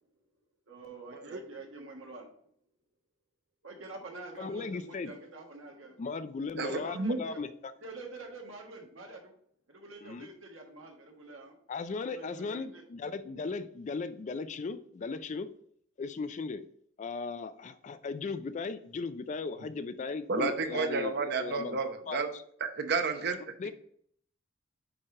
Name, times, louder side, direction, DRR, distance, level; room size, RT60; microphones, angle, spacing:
voice 1, 0.7-2.4 3.6-6.0 6.6-7.5 7.8-9.3 9.7-11.5 12.1-12.8, right 3 dB, 70° right, 1 dB, 1.4 m, -46 dB
voice 2, 4.4-5.1 6.0-7.5 10.0-10.3 11.7-15.5 16.0-16.6 17.0-21.8 22.1-22.2 23.6-23.7, left 4 dB, 35° left, 12 dB, 0.4 m, -37 dB
voice 3, 20.3-22.3 22.7-23.7, right 4 dB, 55° right, 7 dB, 0.8 m, -31 dB
8.7 x 3.2 x 3.7 m, 0.65 s
head